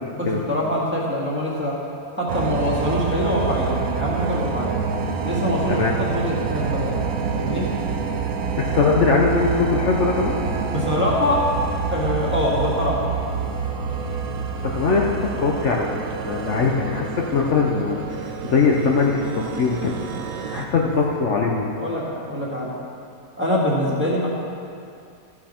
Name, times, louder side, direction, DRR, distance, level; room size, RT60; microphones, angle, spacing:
voice 1, 0.1-1.8 2.2-4.7 5.2-6.9 7.3-7.7 10.7-11.4 11.9-13.0 21.8-22.7 23.4-24.3, left 1 dB, 10° right, -6 dB, 1.7 m, -24 dB
sound 1, 2.3-20.7, right 5 dB, 75° right, 1.2 m, -27 dB
voice 2, 8.6-10.4 14.6-16.0 16.2-19.9 20.5-21.8, left 4 dB, 55° left, -1 dB, 1.0 m, -21 dB
14.5 x 6.4 x 4.4 m, 2.5 s
omnidirectional pair, 1.6 m